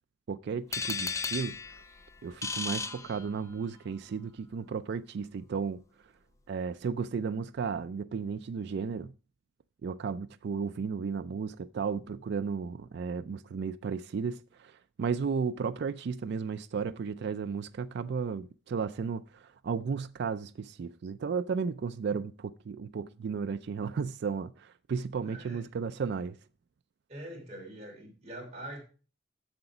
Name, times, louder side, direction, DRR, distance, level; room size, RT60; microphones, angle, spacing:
voice 1, 0.3-1.6 2.2-5.8 6.5-9.1 9.8-14.7 15.0-26.4, right 5 dB, 60° right, 0.3 m, -34 dB
sound 1, 0.7-3.8, left 4 dB, 15° left, 0.4 m, -36 dB
voice 2, 25.2-25.6 27.1-28.8, right 1 dB, 35° right, 3.4 m, -44 dB
8.0 x 6.9 x 4.9 m
head